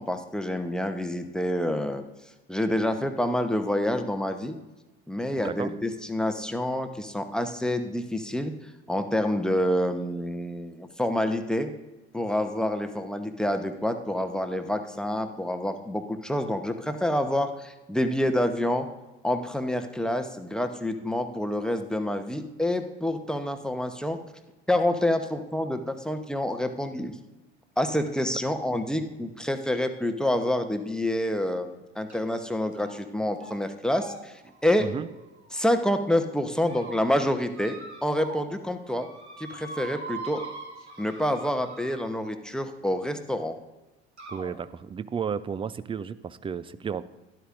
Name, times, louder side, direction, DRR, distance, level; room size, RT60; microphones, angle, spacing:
voice 1, 0.0-2.0 2.5-4.6 5.1-11.7 12.1-18.9 19.2-24.2 24.7-27.2 27.8-34.9 35.5-39.1 39.4-40.4 41.0-43.6, left 1 dB, ahead, 7 dB, 0.9 m, -27 dB
sound 1, 32.1-32.4 32.7-33.1 33.4-33.6 33.9-35.9 36.4-37.0 37.5-38.5 38.8-42.4 43.4-43.5 44.2-44.5, right 3 dB, 90° right, 1.3 m, -43 dB
voice 2, 44.3-47.0, right 6 dB, 15° right, 16 dB, 0.4 m, -33 dB
12.5 x 11.5 x 2.6 m, 1.1 s
figure-of-eight pair, 65°, 33 cm